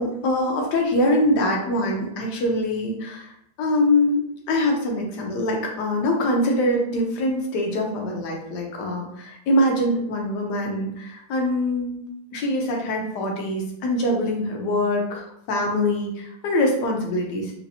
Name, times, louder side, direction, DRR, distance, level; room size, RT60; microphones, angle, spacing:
voice 1, 0.0-4.2 4.5-12.0 12.3-17.5, left 1 dB, 65° left, 0 dB, 1.1 m, -23 dB
3.3 x 2.9 x 2.7 m, 0.75 s
omnidirectional pair, 2.3 m